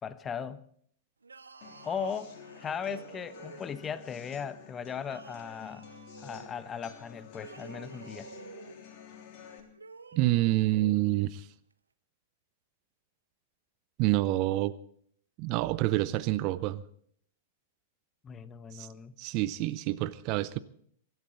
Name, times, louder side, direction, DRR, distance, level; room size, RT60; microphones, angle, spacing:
voice 1, 0.0-0.6 1.8-5.8 6.2-8.3 18.2-19.1, left 7 dB, 20° left, 0.8 m, -38 dB
sound 1, 1.2-4.0 5.0-6.5 7.3-8.8 9.7-11.2, right 4 dB, 75° right, 0.9 m, -50 dB
sound 2, 1.6-9.6, left 7 dB, 40° left, 3.2 m, -50 dB
voice 2, 10.1-11.5 14.0-14.7 15.4-16.8 18.7-18.9 19.2-20.6, right 17 dB, 40° right, 0.6 m, -27 dB
24.0 x 12.5 x 4.0 m
figure-of-eight pair, 100°, 0 cm